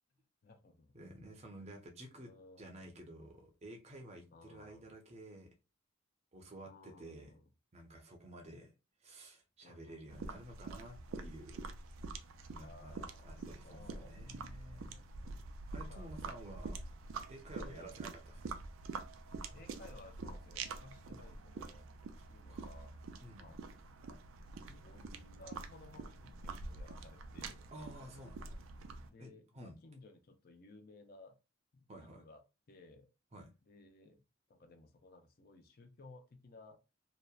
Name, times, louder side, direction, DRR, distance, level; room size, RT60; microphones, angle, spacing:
voice 1, 0.4-0.9 2.1-2.9 4.3-4.9 6.6-7.5 9.6-10.3 12.5-15.3 15.8-16.1 17.5-18.0 19.5-21.9 22.3-22.9 23.4-23.6 24.1-24.2 24.5-28.3 29.0-31.4 31.7-32.4 32.7-33.1 33.7-34.2 34.5-36.8, left 3 dB, 50° left, 0.4 m, -58 dB
voice 2, 0.9-2.3 2.6-5.5 6.3-7.3 7.7-8.7 9.0-11.7 12.4-15.0 15.7-16.8 17.3-18.6 22.5-22.7 23.2-23.5 27.7-28.4 29.2-29.7 31.9-32.2 33.3-33.5, right 1 dB, 35° right, 0.5 m, -52 dB
sound 1, 10.1-29.1, right 4 dB, 85° right, 0.4 m, -46 dB
2.7 x 2.0 x 2.3 m
head